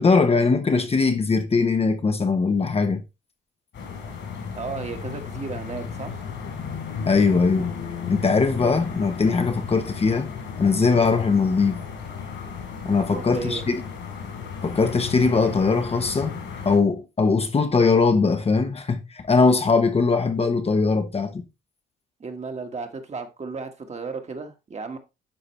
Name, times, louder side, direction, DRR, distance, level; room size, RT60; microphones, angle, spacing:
voice 1, 0.0-3.0 7.1-7.7 8.1-10.3 10.6-11.8 12.8-13.8 14.6-16.4 16.6-21.4, left 4 dB, 30° left, 0.9 m, -21 dB
sound 1, 3.7-16.8, left 6 dB, 70° left, 3.8 m, -35 dB
voice 2, 4.5-6.2 13.1-13.6 22.2-25.0, right 4 dB, 35° right, 1.5 m, -34 dB
11.5 x 4.1 x 3.1 m
cardioid pair, 90°, 20 cm